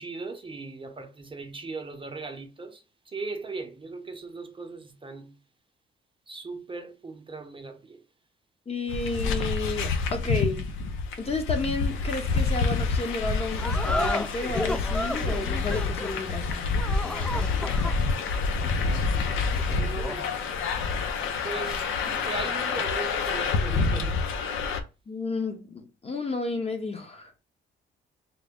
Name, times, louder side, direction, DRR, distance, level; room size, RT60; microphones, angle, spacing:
voice 1, 0.0-5.4 6.3-8.0 19.7-20.4 21.4-24.2, right 3 dB, 25° right, 0.7 m, -38 dB
voice 2, 8.7-10.6 11.2-16.7 25.1-27.3, left 3 dB, 30° left, 0.9 m, -32 dB
sound 1, 8.9-24.8, left 4 dB, 80° left, 0.6 m, -28 dB
sound 2, 13.6-20.3, left 1 dB, 5° left, 0.3 m, -34 dB
3.7 x 2.1 x 3.5 m
cardioid pair, 90°, 20 cm